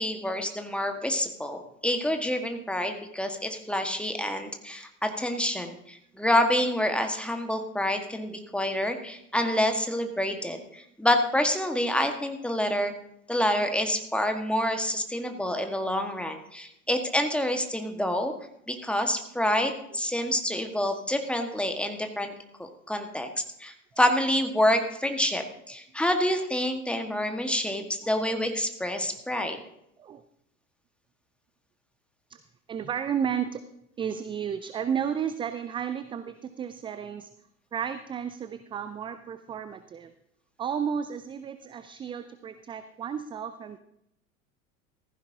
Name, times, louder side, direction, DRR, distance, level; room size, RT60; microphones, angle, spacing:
voice 1, 0.0-12.9 13.3-18.3 18.7-22.3 22.6-29.6, left 1 dB, 5° left, 5 dB, 1.5 m, -27 dB
voice 2, 28.0-28.4 30.0-30.2 32.3-32.4 32.7-33.6 34.0-37.3 37.7-40.1 40.6-43.8, right 8 dB, 15° right, 11 dB, 0.4 m, -33 dB
15.0 x 15.0 x 2.8 m, 0.77 s
figure-of-eight pair, 80°, 43 cm